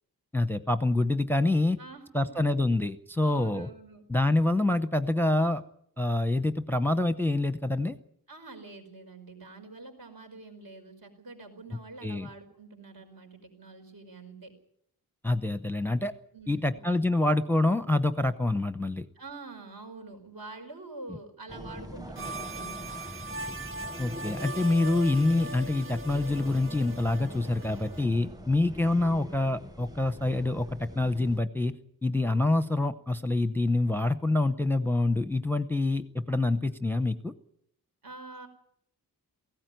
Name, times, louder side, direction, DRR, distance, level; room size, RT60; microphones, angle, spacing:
voice 1, 0.3-1.8 2.1-3.7 4.1-5.6 6.0-8.0 12.0-12.3 15.2-16.1 16.5-19.1 24.0-31.8 32.0-37.3, left 2 dB, 5° left, 11 dB, 0.7 m, -26 dB
voice 2, 1.8-2.7 3.2-4.0 8.3-14.5 16.3-16.8 19.2-22.9 38.0-38.5, right 3 dB, 65° right, 4 dB, 5.1 m, -46 dB
sound 1, 21.5-31.4, equal, 10° right, 1.1 m, -42 dB
sound 2, 22.2-28.0, right 2 dB, 35° right, 0.9 m, -40 dB
18.5 x 16.0 x 9.1 m, 0.70 s
wide cardioid pair, 145°, 37 cm